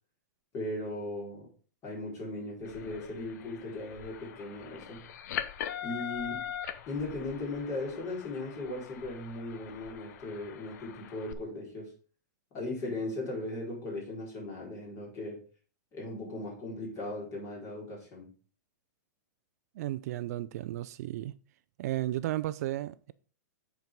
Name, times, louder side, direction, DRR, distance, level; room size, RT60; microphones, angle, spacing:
voice 1, 0.5-1.5 1.8-5.0 5.8-6.5 6.9-11.9 12.5-15.4 15.9-18.3, left 2 dB, 30° left, 4.5 m, -38 dB
sound 1, 2.6-11.3, left 9 dB, 60° left, 0.8 m, -42 dB
voice 2, 19.8-21.3 21.8-23.1, right 15 dB, 55° right, 0.4 m, -34 dB
8.0 x 4.7 x 5.2 m
hypercardioid pair, 140°, 10 cm